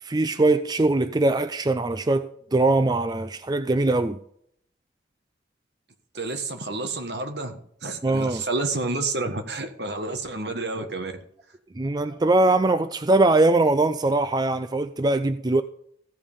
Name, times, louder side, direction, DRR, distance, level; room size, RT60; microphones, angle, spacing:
voice 1, 0.0-4.2 8.0-8.4 11.8-15.6, right 2 dB, 25° right, 0.4 m, -21 dB
voice 2, 6.1-11.1, right 3 dB, 70° right, 1.5 m, -30 dB
15.5 x 5.3 x 5.5 m
head